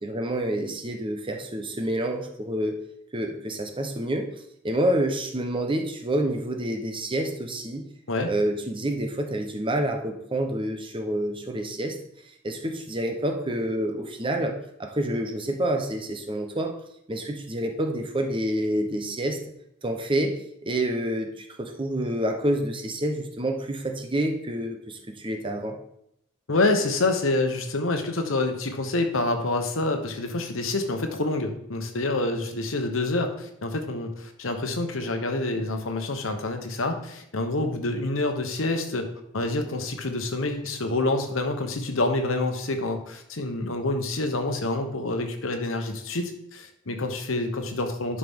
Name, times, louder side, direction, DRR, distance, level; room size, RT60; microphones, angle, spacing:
voice 1, 0.0-2.8 3.1-4.3 4.6-7.8 8.2-12.0 12.4-16.7 17.1-19.4 19.8-20.3 20.6-25.8, right 1 dB, 25° right, 4 dB, 0.9 m, -28 dB
voice 2, 26.5-39.1 39.3-48.2, left 2 dB, 85° left, 6 dB, 1.1 m, -27 dB
11.0 x 5.0 x 3.7 m, 0.76 s
head